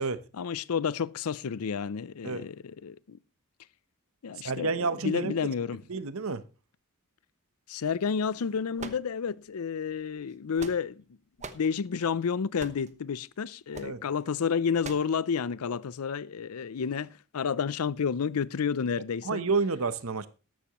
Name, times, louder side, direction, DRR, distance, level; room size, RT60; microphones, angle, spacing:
voice 1, 0.4-3.2 4.2-5.8 7.7-11.0 11.5-19.4, left 6 dB, 85° left, 0.5 m, -30 dB
voice 2, 4.4-5.3 5.9-6.4 13.8-14.0 19.2-20.3, right 4 dB, 70° right, 0.9 m, -29 dB
sound 1, 8.8-9.5 10.3-11.0 11.4-11.7 12.6-12.9 13.7-14.0 14.8-15.1, right 3 dB, 30° right, 0.9 m, -42 dB
14.0 x 11.5 x 3.0 m
head